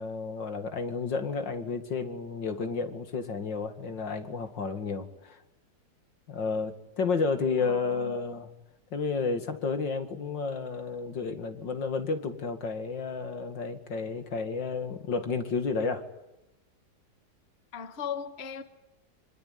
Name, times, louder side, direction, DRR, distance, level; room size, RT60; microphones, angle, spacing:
voice 1, 0.0-5.4 6.3-8.5 8.9-16.0, left 4 dB, 70° left, 2.8 m, -31 dB
voice 2, 7.6-8.2 17.7-18.6, left 7 dB, 35° left, 1.7 m, -37 dB
25.5 x 25.0 x 9.4 m
omnidirectional pair, 2.0 m